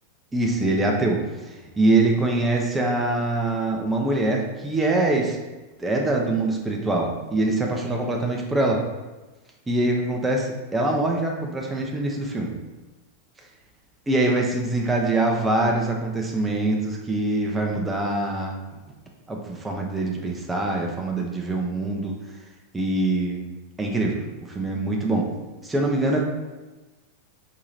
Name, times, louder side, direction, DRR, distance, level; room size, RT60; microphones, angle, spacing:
voice 1, 0.3-1.2 1.8-5.4 5.8-8.8 9.7-12.5 14.1-18.6 19.3-22.2 22.7-23.4 23.8-24.2 24.5-25.3 25.6-26.2, right 2 dB, 10° right, -1 dB, 0.5 m, -24 dB
4.2 x 2.8 x 2.5 m, 1.2 s
figure-of-eight pair, 90°, 0 cm